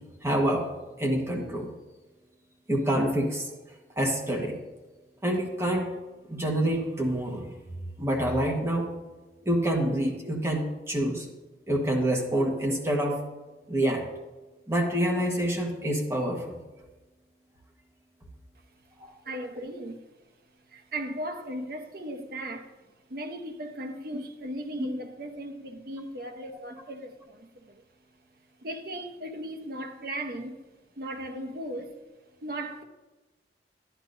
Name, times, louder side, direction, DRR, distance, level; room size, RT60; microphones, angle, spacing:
voice 1, 0.2-0.7 1.0-1.7 2.7-3.5 4.0-4.5 5.2-5.9 6.3-7.4 8.0-8.9 9.4-11.2 11.7-13.2 13.7-14.0 14.7-16.4 19.0-19.1, right 1 dB, 15° right, 1.3 m, -26 dB
voice 2, 19.2-20.0 20.7-22.7 23.1-27.8 28.6-30.6 31.0-32.0 32.4-32.8, right 1 dB, 55° right, 0.9 m, -37 dB
12.0 x 10.5 x 2.6 m
head